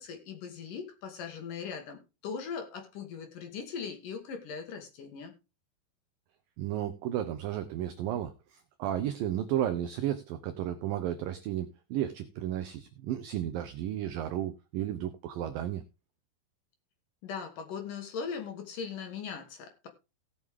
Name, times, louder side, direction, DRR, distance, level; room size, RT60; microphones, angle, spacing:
voice 1, 0.0-5.3 17.2-19.9, left 6 dB, 60° left, 5 dB, 2.8 m, -39 dB
voice 2, 6.6-15.8, right 11 dB, 85° right, 10 dB, 2.0 m, -33 dB
17.5 x 6.3 x 3.6 m, 0.28 s
omnidirectional pair, 5.0 m